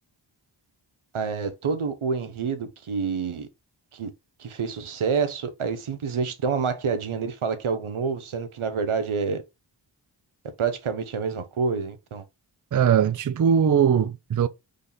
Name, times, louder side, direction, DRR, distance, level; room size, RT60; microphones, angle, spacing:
voice 1, 1.1-3.5 3.9-4.1 4.4-9.4 10.6-12.2, right 5 dB, 90° right, 0.8 m, -28 dB
voice 2, 12.7-14.5, right 8 dB, 45° right, 0.4 m, -20 dB
4.2 x 3.4 x 3.8 m
wide cardioid pair, 45°, 48 cm